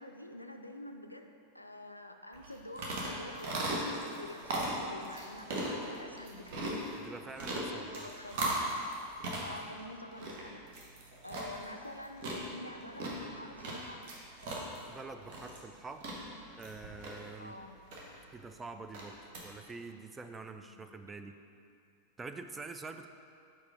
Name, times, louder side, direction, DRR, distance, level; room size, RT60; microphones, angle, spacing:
voice 1, 0.0-6.9 7.7-8.7 9.4-10.6 11.2-14.1 17.4-17.9 20.7-20.9, left 1 dB, 85° left, 5 dB, 0.3 m, -47 dB
sound 1, 2.3-19.4, right 1 dB, 50° right, 1.1 m, -39 dB
voice 2, 7.0-8.1 14.9-16.1 16.6-17.5 18.3-19.2 19.4-21.4 22.2-23.1, right 3 dB, 15° right, 7 dB, 0.3 m, -46 dB
4.8 x 4.7 x 4.9 m, 2.5 s
figure-of-eight pair, 90°, 0 cm